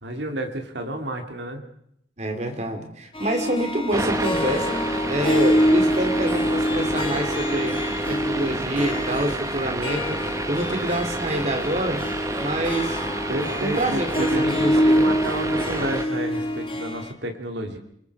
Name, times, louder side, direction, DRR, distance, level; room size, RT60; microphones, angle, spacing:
voice 1, 0.0-1.6 13.3-17.8, right 1 dB, 65° right, 4 dB, 2.5 m, -30 dB
voice 2, 2.2-7.8 8.1-10.2 10.5-12.0 12.4-13.0 13.6-15.1, right 1 dB, 35° right, 5 dB, 3.0 m, -27 dB
Harp, 3.1-17.1, equal, 30° left, 2.0 m, -25 dB
sound 1, 3.9-16.0, right 2 dB, 15° right, 1.2 m, -30 dB
28.5 x 20.5 x 4.8 m, 0.71 s
head